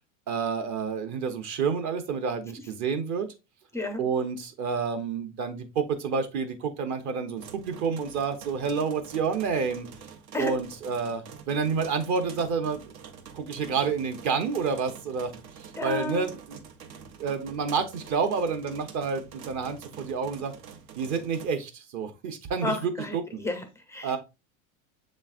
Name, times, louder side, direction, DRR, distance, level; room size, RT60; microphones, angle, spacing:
voice 1, 0.3-3.3 4.0-9.9 10.4-12.8 13.3-15.3 15.6-16.6 17.2-20.5 21.0-22.9 24.0-24.2, right 5 dB, 45° right, 0.8 m, -29 dB
voice 2, 3.7-4.0 10.3-10.6 15.8-16.3 22.6-24.2, left 2 dB, 10° left, 0.3 m, -32 dB
sound 1, 7.4-21.5, right 6 dB, 80° right, 1.0 m, -47 dB
7.0 x 3.1 x 2.4 m
supercardioid pair, 125°, 41 cm